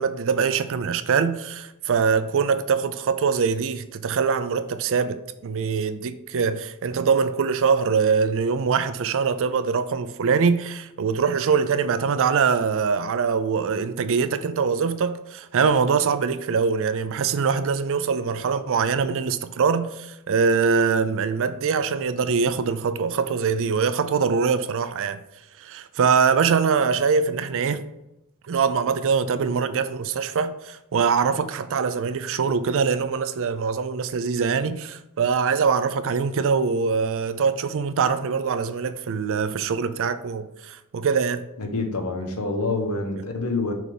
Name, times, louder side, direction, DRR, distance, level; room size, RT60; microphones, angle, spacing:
voice 1, 0.0-25.2 25.6-27.8 28.5-41.5, right 5 dB, 60° right, 0.4 m, -23 dB
voice 2, 41.6-43.7, left 3 dB, 70° left, 1.1 m, -27 dB
6.1 x 3.5 x 5.4 m
head